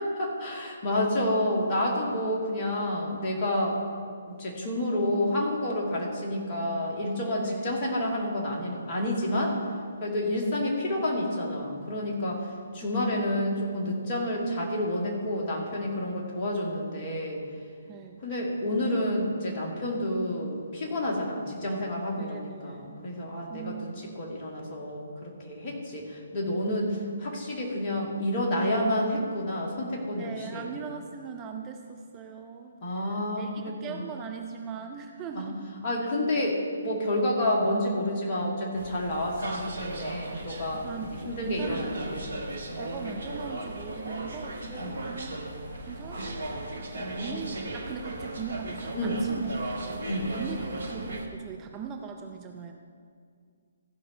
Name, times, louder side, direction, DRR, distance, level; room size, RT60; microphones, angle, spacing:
voice 1, 0.0-3.8 4.3-9.6 10.0-17.4 18.2-30.7 32.8-34.1 35.3-35.5 35.8-40.9 41.3-42.3 42.7-43.2 44.8-45.1 47.0-47.4 48.9-49.2 50.1-50.3, left 1 dB, 35° left, -2 dB, 2.0 m, -29 dB
voice 2, 12.8-13.4 17.9-18.2 22.2-23.0 23.5-24.3 30.1-35.7 40.7-42.0 42.8-45.3 45.9-50.0 50.3-52.7, right 6 dB, 20° right, 3 dB, 0.5 m, -41 dB
sound 1, 38.8-51.3, right 1 dB, 60° right, 1.2 m, -37 dB
14.5 x 5.3 x 5.4 m, 2.2 s
figure-of-eight pair, 135°, 0 cm